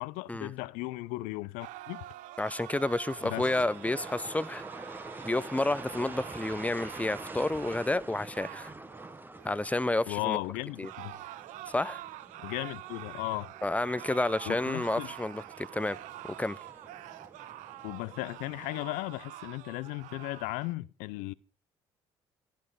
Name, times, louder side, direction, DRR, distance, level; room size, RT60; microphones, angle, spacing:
voice 1, 0.0-2.0 3.2-3.5 10.1-11.1 12.4-13.5 14.5-15.1 17.8-21.3, left 21 dB, 70° left, 0.6 m, -36 dB
sound 1, 1.6-10.1 10.8-20.7, right 15 dB, 65° right, 0.6 m, -46 dB
voice 2, 2.4-4.6 5.2-8.7 9.4-10.4 10.8-10.9 11.7-12.0 13.6-16.0 16.4-16.6, left 2 dB, 10° left, 0.7 m, -30 dB
sound 2, 3.1-19.1, right 2 dB, 15° right, 1.1 m, -47 dB
15.0 x 11.5 x 5.1 m
hypercardioid pair, 55°, 14 cm